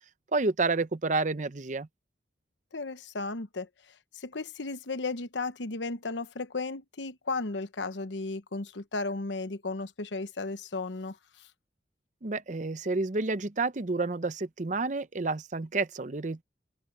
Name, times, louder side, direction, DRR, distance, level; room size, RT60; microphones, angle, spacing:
voice 1, 0.3-1.9 12.2-16.4, right 3 dB, 40° right, 0.7 m, -29 dB
voice 2, 2.7-3.7 4.1-11.2, left 3 dB, 80° left, 1.0 m, -34 dB
open air
head